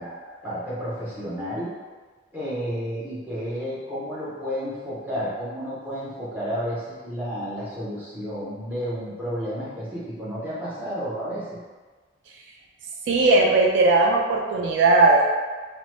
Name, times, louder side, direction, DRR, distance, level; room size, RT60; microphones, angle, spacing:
voice 1, 0.0-1.7 2.3-11.6, equal, 10° right, -10 dB, 0.7 m, -31 dB
voice 2, 13.1-15.3, right 3 dB, 70° right, -1 dB, 0.3 m, -18 dB
2.9 x 2.1 x 3.0 m, 1.4 s
head